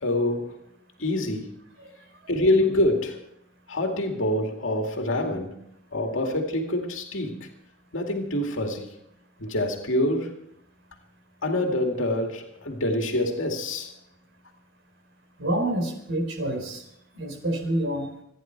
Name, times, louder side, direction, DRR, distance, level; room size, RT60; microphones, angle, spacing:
voice 1, 0.0-0.6 1.0-1.5 2.3-3.2 3.7-5.6 5.9-7.5 7.9-8.9 9.4-10.4 11.4-13.9, left 1 dB, 75° left, 2 dB, 2.3 m, -26 dB
voice 2, 15.4-16.8 17.1-18.1, right 1 dB, 65° right, 4 dB, 4.3 m, -27 dB
27.5 x 10.5 x 4.6 m, 0.76 s
head